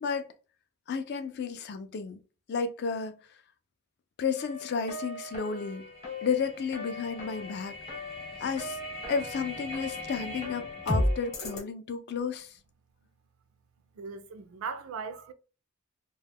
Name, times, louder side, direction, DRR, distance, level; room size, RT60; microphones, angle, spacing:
voice 1, 0.0-0.3 0.9-2.2 2.5-3.1 4.2-5.9 6.2-7.8 8.4-8.8 9.1-12.5, left 5 dB, 50° left, 0.3 m, -32 dB
sound 1, 4.4-11.6, left 1 dB, 30° left, 0.8 m, -35 dB
voice 2, 13.9-15.3, right 5 dB, 70° right, 0.4 m, -38 dB
2.2 x 2.1 x 3.3 m
head